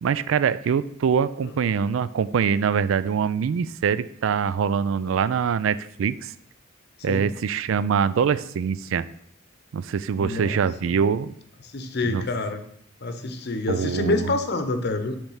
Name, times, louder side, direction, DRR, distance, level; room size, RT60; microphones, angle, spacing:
voice 1, 0.0-6.3 7.0-9.0 9.7-11.3 12.0-12.2 13.7-14.3, right 7 dB, 85° right, 16 dB, 0.4 m, -24 dB
voice 2, 10.2-10.6 11.7-12.6 13.0-15.2, left 2 dB, 60° left, 8 dB, 0.8 m, -27 dB
7.2 x 3.4 x 5.6 m, 0.68 s
head